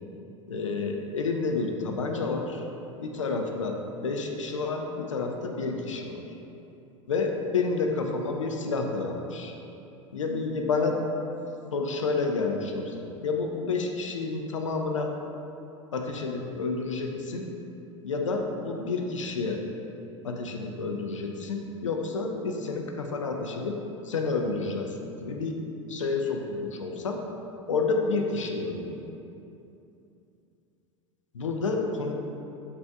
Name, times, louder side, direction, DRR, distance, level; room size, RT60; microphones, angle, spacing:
voice 1, 0.5-2.7 3.0-6.2 7.1-9.5 10.1-11.0 11.7-15.1 15.9-17.5 18.0-19.6 20.2-23.8 24.0-25.5 25.9-27.2 27.7-29.0 31.3-32.1, left 4 dB, 80° left, 3 dB, 0.4 m, -29 dB
5.3 x 2.5 x 2.3 m, 2.8 s
figure-of-eight pair, 80°, 16 cm